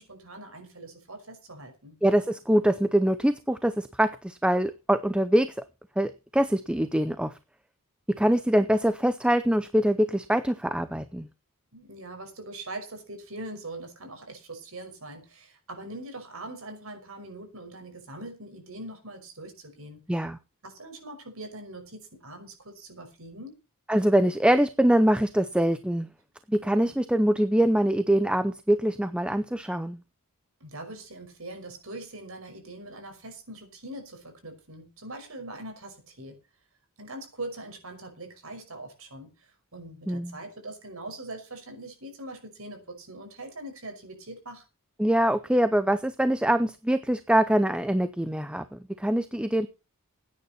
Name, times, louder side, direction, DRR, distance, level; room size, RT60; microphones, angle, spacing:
voice 1, 0.0-2.0 11.7-20.0 20.6-23.5 30.6-36.4 37.0-44.6, right 1 dB, 70° right, 5 dB, 5.6 m, -42 dB
voice 2, 2.0-5.5 6.0-7.3 8.2-11.3 20.1-20.4 23.9-26.1 26.5-30.0 40.1-40.4 45.0-49.7, right 1 dB, 5° right, 11 dB, 0.6 m, -24 dB
17.0 x 9.6 x 4.3 m, 0.29 s
head